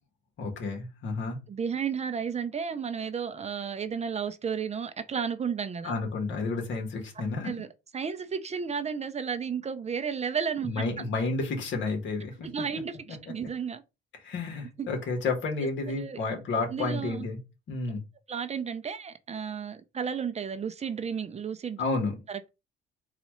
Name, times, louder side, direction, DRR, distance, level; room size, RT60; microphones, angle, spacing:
voice 1, 0.4-1.4 5.8-7.5 10.6-12.8 14.2-17.4 17.7-18.0 21.8-22.2, left 3 dB, 70° left, 1.4 m, -31 dB
voice 2, 1.5-5.9 7.4-7.7 7.9-10.7 12.4-13.8 14.8-14.9 15.9-16.2 16.7-17.3 18.3-21.8 22.3-22.5, right 6 dB, 35° right, 0.5 m, -33 dB
4.1 x 2.3 x 3.0 m
cardioid pair, 90°, 20 cm